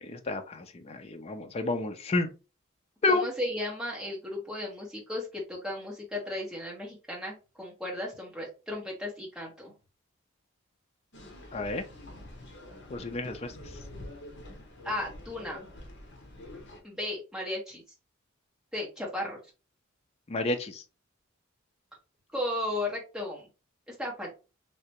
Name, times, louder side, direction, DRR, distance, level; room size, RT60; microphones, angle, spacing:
voice 1, 0.0-2.3 3.0-3.2 11.5-11.8 12.9-13.5 20.3-20.8, left 2 dB, 30° left, 6 dB, 0.4 m, -30 dB
voice 2, 3.1-9.7 14.8-15.6 16.8-17.8 18.7-19.4 22.3-23.5 23.9-24.3, left 1 dB, 5° right, -3 dB, 1.2 m, -35 dB
sound 1, 11.1-16.8, left 1 dB, 55° left, 0.9 m, -46 dB
3.3 x 2.9 x 2.9 m, 0.30 s
head